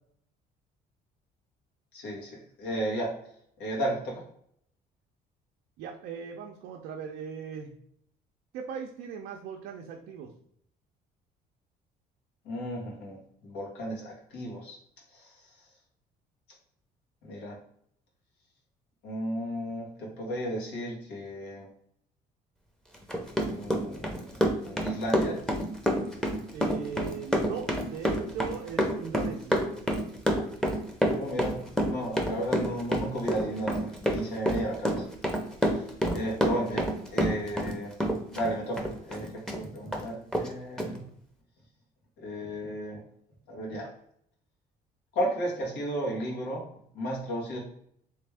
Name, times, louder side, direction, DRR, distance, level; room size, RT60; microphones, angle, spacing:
voice 1, 1.9-3.1 3.6-4.2 12.4-14.8 15.1-15.5 17.2-17.6 19.0-21.7 23.5-24.2 24.6-25.4 31.1-35.0 35.7-35.8 36.1-36.9 37.1-37.9 38.3-41.0 42.2-43.0 43.5-43.9 45.1-46.6 46.9-47.6, equal, 90° left, -2 dB, 1.6 m, -34 dB
voice 2, 5.8-7.7 8.5-10.3 26.5-29.6 36.2-36.4, right 7 dB, 85° right, 1 dB, 0.5 m, -39 dB
Run, 22.9-37.7 38.0-39.6 39.9-40.0 40.3-40.5 40.8-40.9, equal, 5° left, 0.7 m, -27 dB
3.4 x 3.2 x 3.4 m, 0.67 s
cardioid pair, 110°, 17 cm